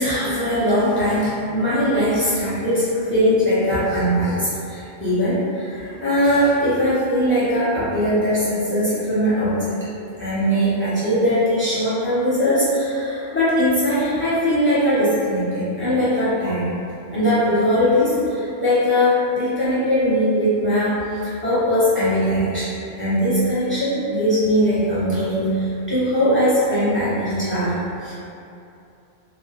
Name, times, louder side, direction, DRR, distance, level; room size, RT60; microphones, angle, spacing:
voice 1, 0.0-9.7 10.2-16.7 17.1-28.1, equal, 10° left, -14 dB, 0.9 m, -20 dB
3.0 x 2.0 x 2.8 m, 2.7 s
omnidirectional pair, 1.1 m